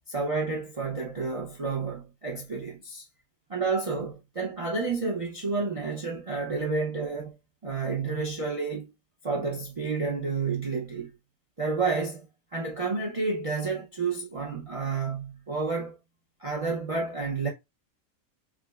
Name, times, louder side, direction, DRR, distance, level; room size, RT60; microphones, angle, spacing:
voice 1, 0.1-3.1 3.5-7.3 7.6-8.9 9.2-11.1 11.6-12.3 12.5-16.0 16.4-17.5, right 4 dB, 55° right, 0.3 m, -30 dB
4.8 x 2.0 x 2.3 m
omnidirectional pair, 1.5 m